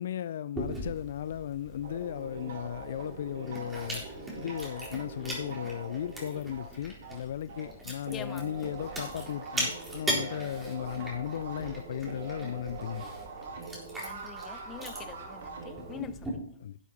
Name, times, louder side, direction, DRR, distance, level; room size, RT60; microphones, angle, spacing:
voice 1, 0.0-4.1 4.4-13.1 16.6-16.8, left 10 dB, 55° left, 16 dB, 0.3 m, -36 dB
Chewing mastication, 0.6-16.3, right 1 dB, 10° right, 3.9 m, -40 dB
sound 1, 1.8-7.7 8.0-16.0, right 4 dB, 60° right, 2.1 m, -43 dB
voice 2, 8.1-8.4 14.0-16.4, left 10 dB, 20° left, 13 dB, 0.7 m, -44 dB
11.5 x 8.3 x 4.1 m, 0.63 s
figure-of-eight pair, 120°, 0 cm